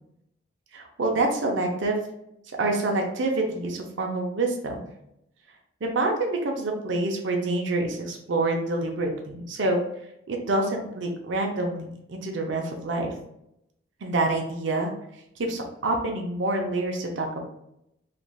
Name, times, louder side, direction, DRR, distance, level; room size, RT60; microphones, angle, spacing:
voice 1, 0.7-2.0 2.6-4.8 5.8-9.8 10.3-13.1 14.0-14.9 15.4-17.5, right 2 dB, 75° right, 2 dB, 0.5 m, -27 dB
3.2 x 2.5 x 2.2 m, 0.78 s
head